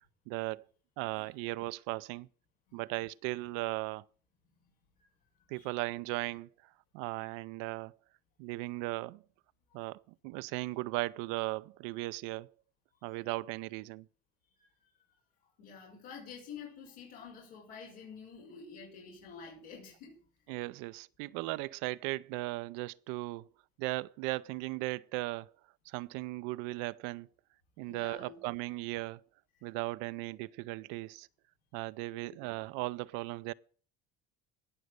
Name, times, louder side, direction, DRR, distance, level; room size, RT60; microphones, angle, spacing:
voice 1, 0.3-0.6 1.0-2.3 2.7-4.0 5.5-6.5 6.9-8.0 8.4-9.2 9.7-12.5 13.0-14.1 20.5-23.5 23.8-25.5 25.9-27.3 27.8-29.2 29.6-31.3 31.7-33.5, right 20 dB, 80° right, 0.5 m, -37 dB
voice 2, 15.6-20.2 27.9-28.4 32.3-32.4, left 6 dB, 90° left, 6.0 m, -49 dB
17.5 x 6.4 x 6.6 m
supercardioid pair, 110°, 32 cm